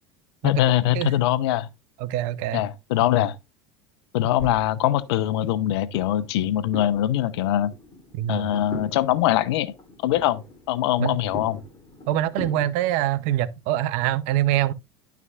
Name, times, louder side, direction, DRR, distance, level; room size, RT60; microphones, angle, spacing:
voice 1, 0.4-1.7 2.5-3.4 4.1-7.7 8.3-9.7 10.0-10.4 10.7-11.6, left 13 dB, 75° left, 0.7 m, -22 dB
voice 2, 2.0-2.6 8.1-8.6 11.0-11.2 12.1-14.7, right 13 dB, 60° right, 0.6 m, -24 dB
sound 1, 4.4-12.7, left 2 dB, 25° left, 3.0 m, -41 dB
10.5 x 5.9 x 2.4 m
hypercardioid pair, 90°, 14 cm